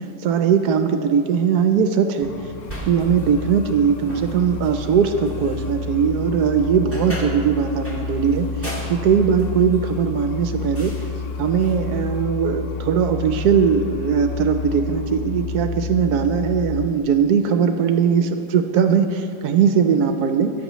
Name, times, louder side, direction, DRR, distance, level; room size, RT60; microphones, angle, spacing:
voice 1, 0.2-2.3 2.8-10.9 11.4-20.5, right 7 dB, 75° right, 7 dB, 1.1 m, -20 dB
sound 1, 2.2-16.9, left 4 dB, 70° left, 0.7 m, -30 dB
sound 2, 2.6-12.2, equal, 10° left, 1.6 m, -39 dB
13.5 x 10.0 x 3.1 m, 2.5 s
omnidirectional pair, 1.7 m